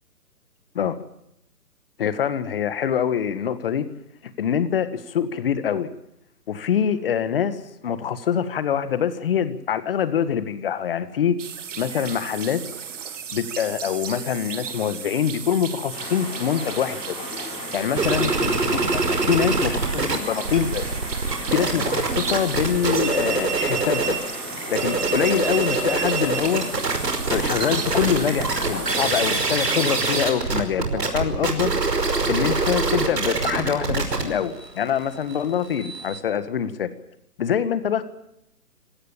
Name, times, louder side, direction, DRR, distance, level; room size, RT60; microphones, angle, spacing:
voice 1, 2.0-3.9 4.2-5.9 6.5-11.4 11.8-12.6 13.3-17.2 17.7-21.0 21.5-24.2 24.7-26.7 27.3-31.7 32.3-36.9 37.4-38.0, left 8 dB, 35° left, 13 dB, 1.8 m, -24 dB
sound 1, 11.4-29.4, right 7 dB, 50° right, 2.2 m, -36 dB
sound 2, 15.9-29.2, left 2 dB, 10° left, 7.5 m, -36 dB
sound 3, 18.0-20.2 20.4-24.2 24.6-36.2, right 4 dB, 85° right, 5.5 m, -24 dB
25.5 x 18.0 x 7.3 m, 0.81 s
hypercardioid pair, 160°, 47 cm